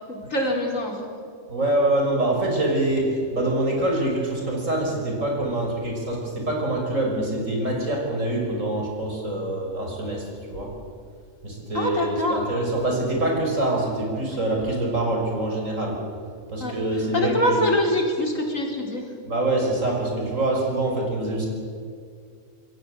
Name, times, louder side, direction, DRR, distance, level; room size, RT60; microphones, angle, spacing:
voice 1, 0.1-1.0 11.7-12.4 16.6-16.7 17.1-19.0, left 1 dB, 80° left, 1 dB, 4.6 m, -24 dB
voice 2, 1.5-10.7 11.4-16.0 16.5-17.6 19.2-21.5, right 1 dB, 80° right, 0 dB, 6.4 m, -25 dB
26.5 x 22.0 x 8.0 m, 2.2 s
omnidirectional pair, 1.3 m